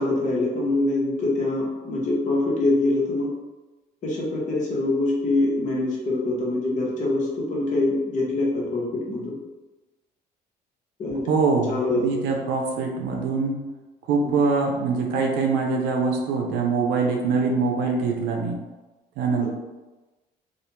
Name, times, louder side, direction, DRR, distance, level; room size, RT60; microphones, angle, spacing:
voice 1, 0.0-3.3 4.0-9.4 11.0-11.3 11.7-12.0 19.4-19.5, left 2 dB, 45° left, -3 dB, 0.8 m, -24 dB
voice 2, 11.3-11.7 12.0-13.6 14.1-18.6 19.2-19.5, right 4 dB, 85° right, 1 dB, 0.5 m, -23 dB
2.4 x 2.1 x 2.9 m, 1.2 s
cardioid pair, 110°, 17 cm